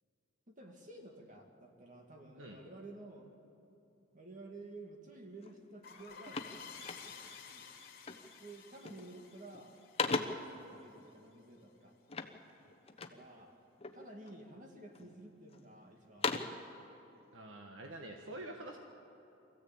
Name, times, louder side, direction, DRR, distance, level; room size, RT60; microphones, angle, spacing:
voice 1, 0.5-3.3 4.1-7.7 8.4-9.8 10.1-12.0 13.0-13.6 13.9-16.5, right 2 dB, 40° right, 1 dB, 2.2 m, -53 dB
sound 1, 5.4-5.6 5.9-7.4 8.0-8.4 8.7-9.2 9.5-10.6 12.1-13.3 13.8-14.4 15.0-15.6 16.0-16.7, left 4 dB, 30° left, 1.0 m, -39 dB
sound 2, 5.8-11.1, left 6 dB, 55° left, 2.6 m, -53 dB
voice 2, 17.3-18.8, right 1 dB, 80° right, 2 dB, 1.5 m, -46 dB
24.0 x 15.0 x 8.7 m, 2.9 s
head